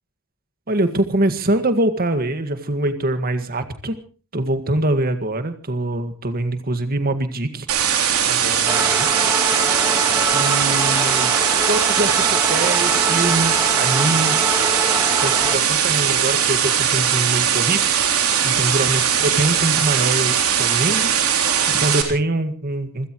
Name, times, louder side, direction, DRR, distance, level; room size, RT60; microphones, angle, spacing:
voice 1, 0.7-4.0 4.3-7.7 8.2-9.1 10.3-11.3 11.7-14.7 15.2-21.1 21.7-23.1, right 1 dB, 45° right, 9 dB, 1.9 m, -24 dB
sound 1, 7.7-22.0, right 8 dB, 80° right, 3.5 m, -19 dB
sound 2, 8.7-15.6, right 2 dB, 15° right, 2.1 m, -25 dB
27.5 x 16.5 x 3.1 m, 0.35 s
head